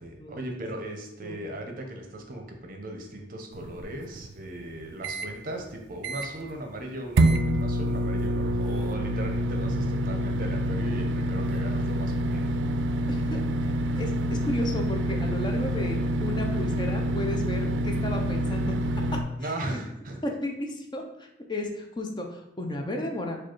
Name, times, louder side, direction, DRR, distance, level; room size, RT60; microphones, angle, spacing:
voice 1, 0.0-12.6 19.4-20.2, right 1 dB, 50° right, 3 dB, 0.7 m, -37 dB
Appliance - microwave being used, 3.5-5.3 5.7-5.8 6.0-6.5 7.2-19.2, right 1 dB, 80° right, 0.4 m, -27 dB
voice 2, 13.1-13.4 14.0-19.0 19.4-19.8 20.2-23.4, left 1 dB, 25° left, 2 dB, 0.5 m, -34 dB
4.9 x 2.3 x 4.4 m, 0.86 s
head